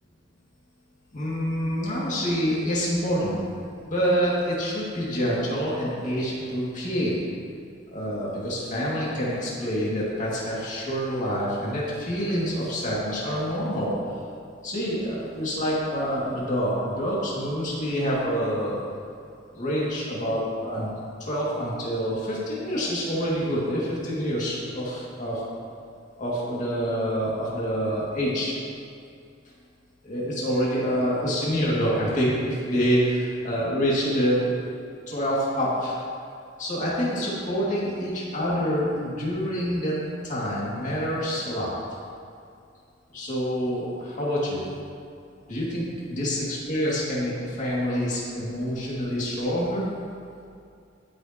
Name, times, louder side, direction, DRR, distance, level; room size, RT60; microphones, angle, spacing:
voice 1, 1.1-3.4 3.9-7.1 7.9-13.9 14.6-18.8 19.5-20.9 21.2-25.4 26.2-28.5 30.0-34.7 35.1-36.0 36.6-40.0 40.2-41.7 43.1-44.6 45.5-49.9, equal, 45° left, -6 dB, 2.4 m, -27 dB
17.5 x 6.5 x 3.0 m, 2.5 s
head